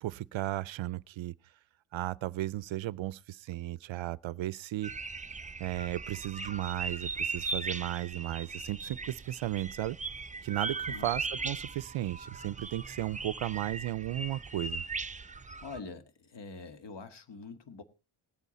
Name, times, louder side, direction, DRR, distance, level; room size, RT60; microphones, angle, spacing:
voice 1, 0.0-1.3 1.9-4.9 5.6-10.0 10.4-14.8, right 14 dB, 65° right, 0.5 m, -35 dB
sound 1, 4.8-15.8, right 4 dB, 15° right, 0.5 m, -39 dB
voice 2, 15.6-17.8, left 4 dB, 55° left, 1.8 m, -45 dB
19.0 x 8.3 x 4.1 m
cardioid pair, 110°, 50 cm